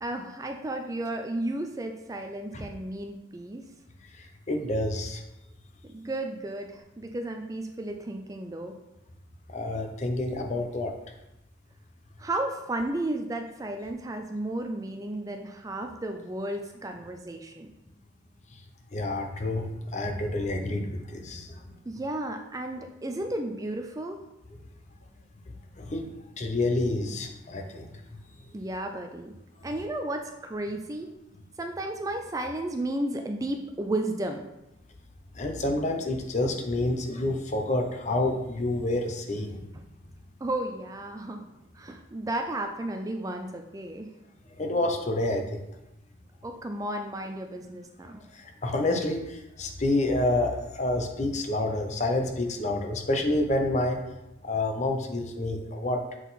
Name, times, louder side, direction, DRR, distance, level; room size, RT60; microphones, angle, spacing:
voice 1, 0.0-3.6 5.9-8.8 12.2-17.7 21.9-24.2 28.5-29.3 29.6-31.1 31.6-34.4 40.4-41.5 41.7-44.2 46.4-48.2, right 1 dB, 20° right, 4 dB, 0.4 m, -33 dB
voice 2, 4.5-5.2 9.5-10.9 18.9-21.8 25.7-26.1 26.4-27.9 35.4-39.6 44.6-45.6 48.3-54.0 54.4-56.0, left 2 dB, 35° left, 4 dB, 0.7 m, -28 dB
7.3 x 4.0 x 4.0 m, 0.92 s
head